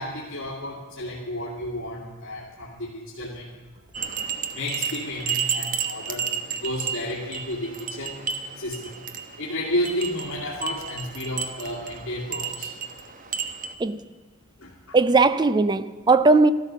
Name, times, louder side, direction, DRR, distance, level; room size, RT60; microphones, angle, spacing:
voice 1, 0.0-3.5 4.5-8.2 8.6-9.0 9.4-12.7 14.6-15.0, left 1 dB, 65° left, 2.1 m, -32 dB
sound 1, 3.9-13.7, right 7 dB, 40° right, 1.1 m, -32 dB
voice 2, 14.9-16.5, right 3 dB, 20° right, 0.4 m, -18 dB
14.0 x 13.0 x 6.8 m
head